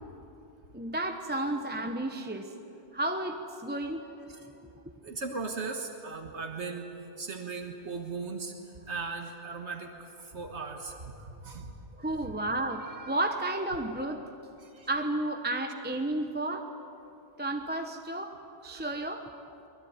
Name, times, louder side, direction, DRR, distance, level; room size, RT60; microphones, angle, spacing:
voice 1, 0.7-2.5 2.9-4.1 12.0-14.2 14.9-16.7 17.4-18.4 18.6-19.3, right 1 dB, 10° right, 4 dB, 1.0 m, -32 dB
voice 2, 5.0-6.9 7.2-8.5 8.9-10.9 11.4-11.7 14.7-14.9, right 4 dB, 80° right, 3 dB, 1.8 m, -37 dB
23.5 x 20.5 x 9.6 m, 2.9 s
omnidirectional pair, 1.1 m